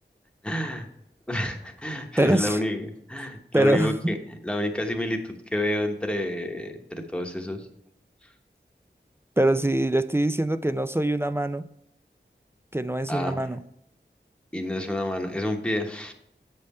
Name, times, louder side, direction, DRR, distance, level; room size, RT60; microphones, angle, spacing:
voice 1, 0.4-0.9 1.3-7.7 13.1-13.4 14.5-16.1, left 1 dB, 5° left, 3 dB, 1.0 m, -29 dB
voice 2, 2.2-2.6 3.5-4.2 9.4-11.7 12.7-13.6, right 1 dB, 15° right, 11 dB, 0.4 m, -23 dB
7.6 x 5.5 x 4.2 m, 0.77 s
wide cardioid pair, 50°, 19 cm